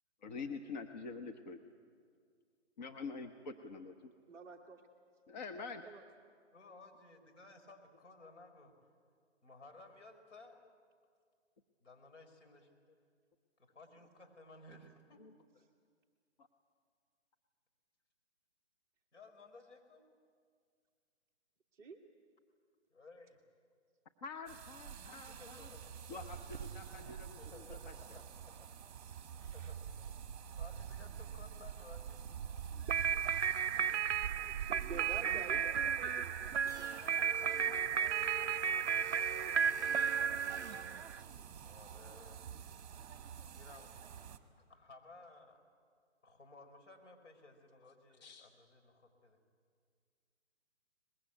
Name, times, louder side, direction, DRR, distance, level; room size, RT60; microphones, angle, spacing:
voice 1, 0.2-1.6 2.8-4.1 5.3-5.8 15.2-15.3 16.4-16.5 24.2-25.7 26.1-28.2 32.7-33.2 33.8-34.0 34.8-34.9 40.6-40.7 41.2-41.3 48.2-48.5, left 4 dB, 35° left, 5 dB, 1.1 m, -47 dB
voice 2, 4.3-4.8 5.8-6.0 21.7-22.0 28.1-28.3 29.4-30.1 34.3-39.0 40.0-40.1, right 4 dB, 10° right, -2 dB, 0.8 m, -52 dB
voice 3, 6.5-8.7 9.4-10.6 11.8-12.7 13.7-15.2 19.1-20.0 22.9-23.4 25.3-26.2 27.4-28.7 29.5-29.8 30.6-32.2 35.2-35.5 41.6-42.4 43.5-44.1 44.7-45.6 46.2-49.4, left 3 dB, 75° left, 3 dB, 4.9 m, -57 dB
sound 1, 24.5-44.4, right 8 dB, 30° right, 1.6 m, -47 dB
sound 2, 32.9-41.2, right 7 dB, 60° right, 0.6 m, -34 dB
sound 3, 36.7-41.0, equal, 10° left, 4.6 m, -50 dB
23.0 x 21.0 x 9.1 m, 2.1 s
hypercardioid pair, 150°, 36 cm